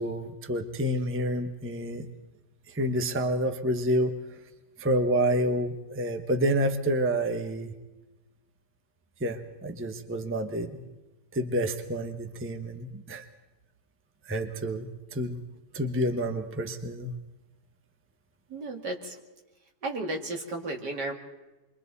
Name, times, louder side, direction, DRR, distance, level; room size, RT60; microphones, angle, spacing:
voice 1, 0.0-2.0 2.7-4.1 4.8-7.7 9.2-10.8 11.3-13.2 14.2-15.3 15.7-17.1, equal, 10° right, 6 dB, 0.9 m, -28 dB
voice 2, 18.5-19.1 19.8-21.1, right 2 dB, 70° right, 2 dB, 2.8 m, -33 dB
28.5 x 23.5 x 4.2 m, 1.1 s
omnidirectional pair, 1.9 m